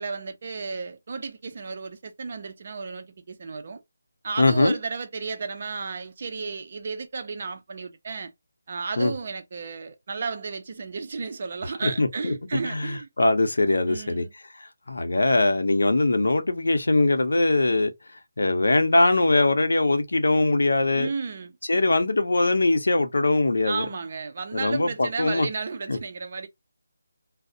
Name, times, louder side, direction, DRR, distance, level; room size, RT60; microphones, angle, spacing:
voice 1, 0.0-3.8 4.2-8.3 8.7-13.1 13.9-14.3 20.9-21.5 23.6-26.5, right 4 dB, 35° right, 0.4 m, -33 dB
voice 2, 4.4-4.8 9.0-9.1 11.8-14.3 14.5-21.1 21.7-23.9 24.5-25.5 25.9-26.0, left 2 dB, 80° left, 0.7 m, -22 dB
2.4 x 2.0 x 2.6 m
figure-of-eight pair, 180°, 0 cm